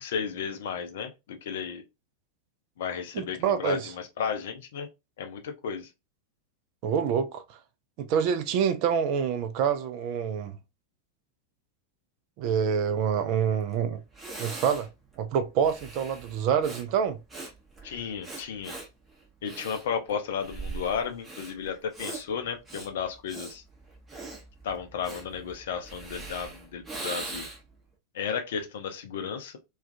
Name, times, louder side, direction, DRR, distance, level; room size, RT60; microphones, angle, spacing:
voice 1, 0.0-1.8 2.8-4.9 5.2-5.9 17.8-18.7 19.4-23.6 24.6-27.5 28.1-29.6, left 7 dB, 55° left, 0.5 m, -33 dB
voice 2, 3.1-3.9 6.8-7.4 8.0-10.6 12.4-14.0 14.4-14.9 15.2-17.2, right 7 dB, 45° right, 0.4 m, -26 dB
Breathing, 13.7-13.8 14.1-27.8, right 3 dB, 15° right, 0.8 m, -41 dB
2.4 x 2.3 x 2.4 m
figure-of-eight pair, 90°, 0 cm